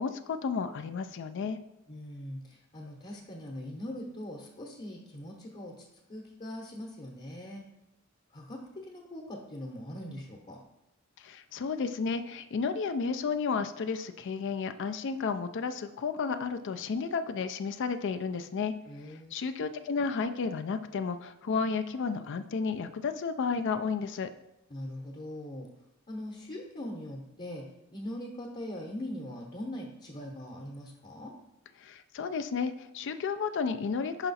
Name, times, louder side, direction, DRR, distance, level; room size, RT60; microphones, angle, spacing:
voice 1, 0.0-1.6 11.2-18.7 19.1-24.3 31.8-34.3, left 5 dB, 60° left, 10 dB, 0.4 m, -32 dB
voice 2, 1.9-5.7 6.1-7.6 8.3-10.6 18.9-19.4 24.7-25.7 26.1-27.6 27.9-31.3, left 1 dB, 35° left, -1 dB, 0.9 m, -41 dB
5.6 x 4.9 x 4.1 m, 0.93 s
head